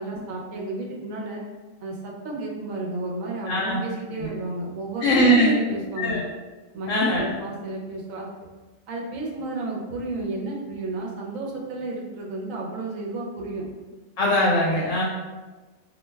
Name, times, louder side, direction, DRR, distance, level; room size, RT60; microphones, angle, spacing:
voice 1, 0.0-1.4 1.8-6.2 6.7-8.3 8.9-13.7, right 2 dB, 85° right, -2 dB, 1.1 m, -32 dB
voice 2, 3.5-3.8 4.2-4.3 5.0-5.6 6.0-6.2 6.9-7.4 14.2-15.0, equal, 70° left, -4 dB, 0.9 m, -21 dB
2.6 x 2.2 x 3.1 m, 1.2 s
omnidirectional pair, 1.3 m